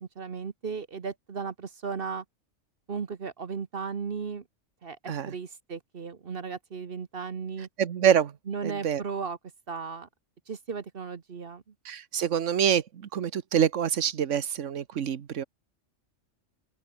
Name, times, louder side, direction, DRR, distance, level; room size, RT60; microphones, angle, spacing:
voice 1, 0.0-2.2 2.9-4.4 4.8-7.7 8.5-9.4 9.7-10.1 10.5-11.6, right 5 dB, 50° right, 1.2 m, -35 dB
voice 2, 7.8-8.3 8.6-9.0 11.8-15.4, right 8 dB, 70° right, 1.4 m, -26 dB
open air
omnidirectional pair, 1.3 m